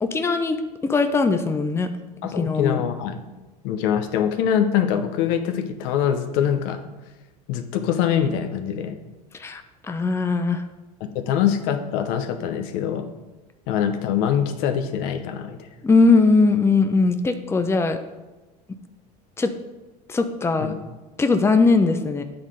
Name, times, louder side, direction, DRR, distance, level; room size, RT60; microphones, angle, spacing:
voice 1, 0.0-0.6 0.8-1.9 2.4-2.8 9.4-10.6 15.8-18.0 19.4-19.5 20.1-20.8 21.2-22.2, left 3 dB, 10° left, 8 dB, 0.6 m, -20 dB
voice 2, 2.2-3.2 3.6-6.8 7.5-9.0 11.1-13.1 13.7-15.6 20.6-20.7, left 9 dB, 65° left, 6 dB, 0.8 m, -23 dB
8.8 x 3.9 x 5.0 m, 1.1 s
hypercardioid pair, 85°, 21 cm